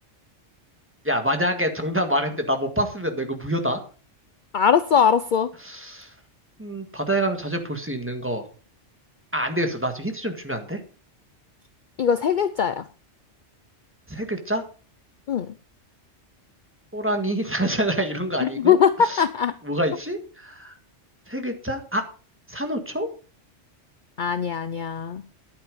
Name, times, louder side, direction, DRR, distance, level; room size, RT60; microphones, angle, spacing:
voice 1, 1.0-3.8 5.6-6.1 6.6-8.4 9.3-10.8 14.1-14.6 16.9-18.8 19.0-19.2 19.6-20.7 21.3-22.0 22.5-23.1, right 1 dB, 10° right, 5 dB, 1.7 m, -26 dB
voice 2, 4.5-5.5 12.0-12.9 15.3-15.5 18.4-19.6 24.2-25.2, left 7 dB, 50° left, 13 dB, 0.7 m, -21 dB
11.0 x 8.8 x 5.2 m, 0.39 s
omnidirectional pair, 1.2 m